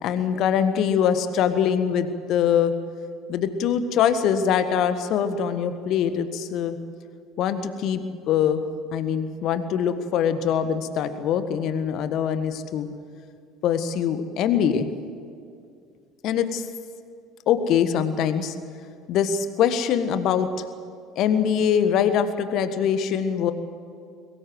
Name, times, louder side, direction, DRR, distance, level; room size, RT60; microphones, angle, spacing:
voice 1, 0.0-2.7 3.3-6.8 7.4-8.6 8.9-12.9 13.6-14.9 16.2-16.6 17.5-18.5 19.1-20.5 21.1-23.5, left 8 dB, 50° left, 10 dB, 1.6 m, -23 dB
22.5 x 19.0 x 7.9 m, 2.4 s
figure-of-eight pair, 60°, 0 cm